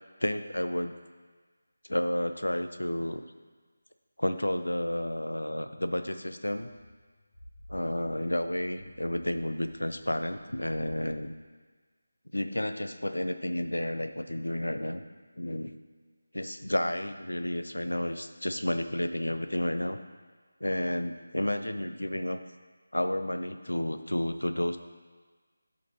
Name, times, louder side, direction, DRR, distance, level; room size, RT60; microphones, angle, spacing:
voice 1, 0.2-0.9 1.9-3.2 4.2-6.7 7.7-11.3 12.3-15.0 15.4-15.7 16.3-20.0 20.6-22.4 22.9-24.8, left 1 dB, 75° left, 9 dB, 0.6 m, -31 dB
sound 1, 6.7-11.2, left 1 dB, 60° left, 1.2 m, -51 dB
13.0 x 5.2 x 2.9 m, 1.4 s
figure-of-eight pair, 160°, 0 cm